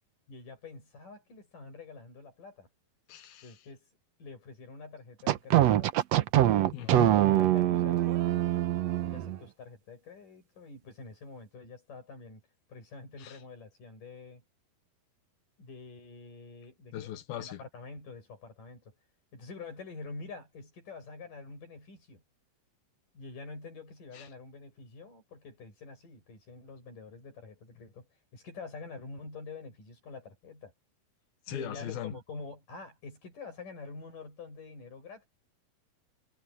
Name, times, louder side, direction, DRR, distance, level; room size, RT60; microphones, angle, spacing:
voice 1, 0.3-2.7 3.4-3.9 4.2-6.0 6.7-8.7 9.0-12.4 12.7-14.4 15.6-19.0 19.3-22.2 23.1-30.7 31.5-35.3, left 4 dB, 55° left, 9.6 m, -46 dB
voice 2, 3.1-3.5 6.7-7.1 13.2-13.4 16.9-17.6 24.1-24.3 31.5-32.1, left 12 dB, 75° left, 3.1 m, -38 dB
sound 1, 5.3-9.4, right 13 dB, 90° right, 1.4 m, -24 dB
omnidirectional pair, 4.4 m